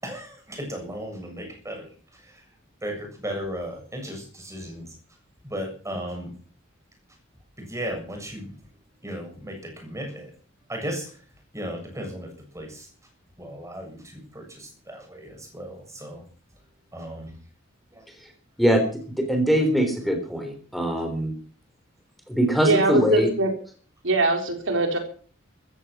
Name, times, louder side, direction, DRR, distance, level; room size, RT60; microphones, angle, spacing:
voice 1, 0.0-1.9 2.2-2.3 2.8-4.9 5.4-6.3 7.6-8.5 9.0-10.3 10.7-11.1 11.5-12.9 13.4-16.2 16.9-17.4 17.9-18.1, equal, 15° right, 3 dB, 7.2 m, -35 dB
voice 2, 19.2-21.3 22.3-23.3, equal, ahead, 5 dB, 3.7 m, -22 dB
voice 3, 22.6-23.5 24.0-25.0, right 2 dB, 70° right, 5 dB, 3.9 m, -22 dB
15.0 x 14.5 x 6.1 m, 0.42 s
head